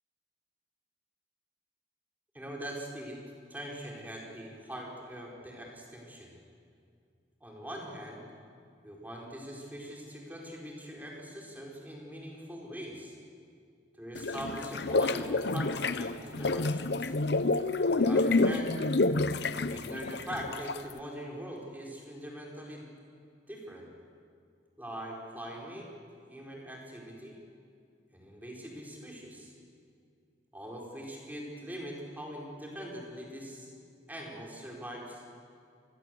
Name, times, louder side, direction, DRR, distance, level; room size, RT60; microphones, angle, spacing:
voice 1, 2.3-3.2 3.5-6.3 7.4-8.2 8.8-13.1 14.0-17.1 17.8-18.8 19.4-22.8 23.5-23.9 24.8-25.9 26.3-27.3 28.1-29.5 30.5-33.7 34.1-35.2, equal, 10° right, -2 dB, 4.7 m, -42 dB
sound 1, 14.2-20.9, left 3 dB, 65° left, 0.8 m, -28 dB
27.0 x 20.5 x 7.9 m, 2.4 s
head